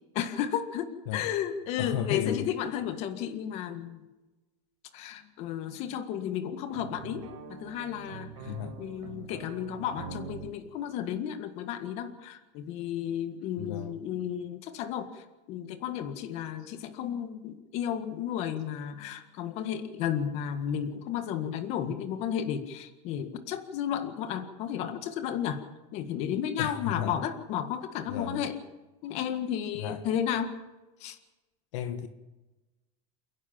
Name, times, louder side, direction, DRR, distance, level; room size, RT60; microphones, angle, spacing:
voice 1, 0.1-4.1 4.9-25.6 25.9-28.6 29.0-30.5 31.0-31.2, left 9 dB, 40° left, 1.9 m, -33 dB
voice 2, 1.8-2.5 8.4-8.8 13.6-14.0 26.6-27.1 28.1-28.4 29.7-30.0 31.7-32.1, left 9 dB, 70° left, 1.6 m, -33 dB
sound 1, 6.7-10.5, right 6 dB, 60° right, 4.1 m, -44 dB
28.5 x 11.0 x 8.9 m
supercardioid pair, 165°, 16 cm